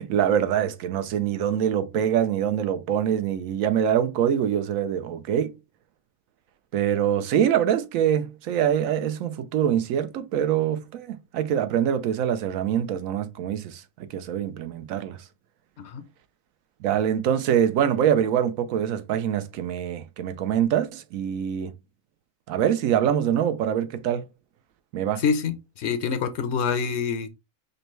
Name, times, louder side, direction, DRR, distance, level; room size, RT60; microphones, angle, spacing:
voice 1, 0.0-5.5 6.7-15.2 16.8-21.7 22.5-24.2 24.9-25.2, right 9 dB, 90° right, 1.0 m, -24 dB
voice 2, 25.2-27.3, left 6 dB, 65° left, 0.8 m, -26 dB
5.2 x 2.2 x 3.1 m
omnidirectional pair, 1.4 m